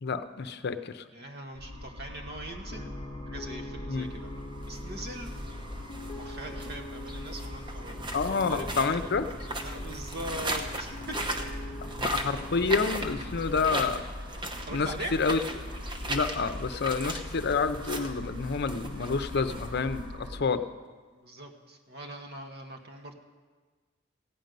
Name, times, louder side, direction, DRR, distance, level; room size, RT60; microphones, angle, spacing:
voice 1, 0.0-1.0 3.9-4.1 8.1-9.3 12.0-14.0 14.7-15.4 16.1-20.6, left 4 dB, 55° left, 10 dB, 0.6 m, -28 dB
voice 2, 1.1-2.9 3.3-4.3 4.7-5.3 5.9-9.1 9.6-11.2 11.4-11.5 14.6-15.1 21.1-23.1, right 1 dB, 55° right, 3 dB, 1.3 m, -41 dB
sound 1, 1.5-20.4, left 1 dB, 85° right, 2.5 m, -41 dB
Piano, 2.7-13.1, left 1 dB, 15° left, 0.8 m, -44 dB
sound 2, 4.5-20.2, right 1 dB, 25° right, 0.9 m, -38 dB
15.5 x 5.3 x 9.2 m, 1.4 s
head